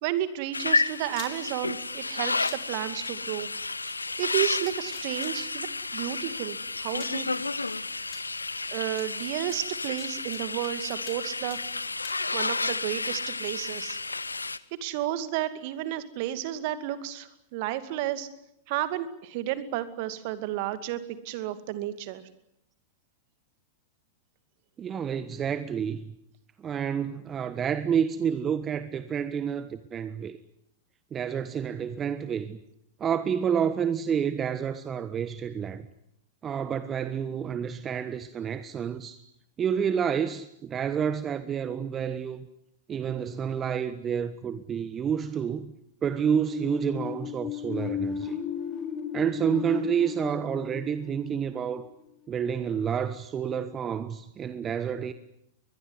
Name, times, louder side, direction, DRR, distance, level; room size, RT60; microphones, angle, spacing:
voice 1, 0.0-3.5 4.2-7.3 8.7-11.6 12.3-14.0 14.7-18.3 18.7-22.2, right 13 dB, 50° right, 2.4 m, -32 dB
sound 1, 0.5-14.6, left 3 dB, 90° left, 1.0 m, -31 dB
sound 2, 1.1-1.3 2.4-2.6 3.9-4.0 4.4-5.3 6.4-6.5 7.0-7.2 8.1-8.2 9.0-9.1 9.5-10.7 11.1-11.2 11.5-12.2, left 10 dB, 45° left, 5.6 m, -44 dB
voice 2, 24.8-26.1 26.6-30.4 31.1-32.6 33.0-35.9 36.4-39.2 39.6-42.5 42.9-45.7 46.0-48.4 49.1-51.9 52.3-55.1, right 8 dB, 25° right, 1.3 m, -29 dB
sound 3, 46.4-52.1, left 8 dB, 30° left, 4.3 m, -35 dB
23.0 x 21.5 x 9.6 m
figure-of-eight pair, 95°, 0 cm